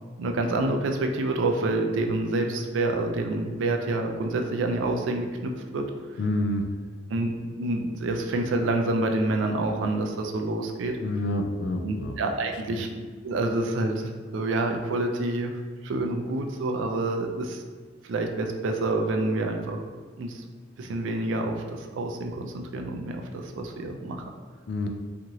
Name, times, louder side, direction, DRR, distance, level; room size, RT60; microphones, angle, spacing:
voice 1, 0.2-5.9 7.1-10.9 11.8-12.9 13.2-15.5 15.8-17.6 18.1-19.8 20.2-20.4 20.8-24.3, right 2 dB, 70° right, 3 dB, 0.3 m, -27 dB
voice 2, 6.2-6.6 11.0-12.1 12.7-12.9 24.7-24.9, left 1 dB, 55° left, 4 dB, 0.3 m, -28 dB
3.0 x 2.5 x 2.6 m, 1.5 s
head